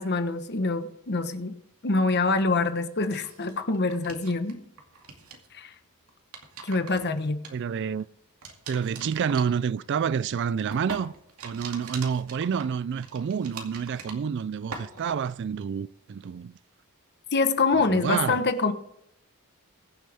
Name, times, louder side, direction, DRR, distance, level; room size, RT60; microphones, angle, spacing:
voice 1, 0.0-1.6 1.8-4.6 5.5-5.7 6.6-7.4 17.3-18.7, left 3 dB, 50° left, 1.1 m, -25 dB
sound 1, 3.0-4.5 4.8-5.5 6.1-8.0 8.4-14.4 14.7-15.3, right 4 dB, 75° right, 2.3 m, -42 dB
voice 2, 7.5-8.1 8.7-11.1 11.4-16.6 17.9-18.4, right 7 dB, 50° right, 0.3 m, -28 dB
22.0 x 7.5 x 3.5 m
head